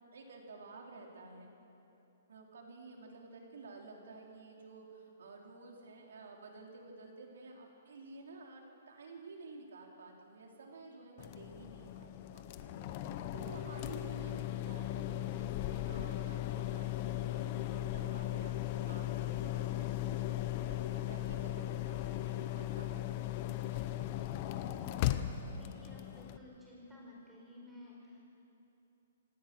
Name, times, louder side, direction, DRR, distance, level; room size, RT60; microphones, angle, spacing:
voice 1, 0.1-1.5 2.3-23.6, right 3 dB, 80° right, 0 dB, 4.3 m, -52 dB
sound 1, 11.2-26.4, left 13 dB, 30° left, 0.8 m, -37 dB
voice 2, 25.5-28.2, left 1 dB, 5° right, -4 dB, 4.6 m, -54 dB
27.0 x 18.5 x 6.3 m, 2.9 s
hypercardioid pair, 170°, 0 cm